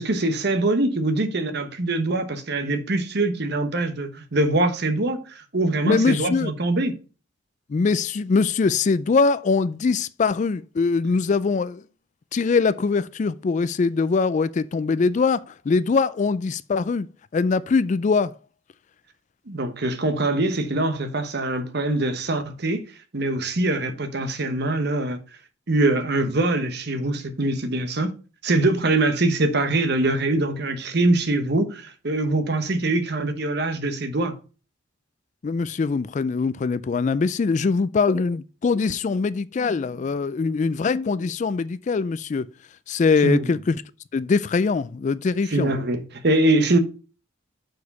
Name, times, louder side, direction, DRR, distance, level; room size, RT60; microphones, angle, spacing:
voice 1, 0.0-7.0 19.5-22.8 23.1-25.2 25.7-28.1 28.4-34.4 43.2-43.6 45.5-46.8, right 2 dB, 55° right, 1.0 m, -23 dB
voice 2, 5.8-6.5 7.7-11.8 12.3-17.1 17.3-18.4 35.4-42.5 42.9-43.8 44.1-45.7, left 4 dB, 35° left, 0.3 m, -22 dB
6.3 x 4.8 x 5.3 m
head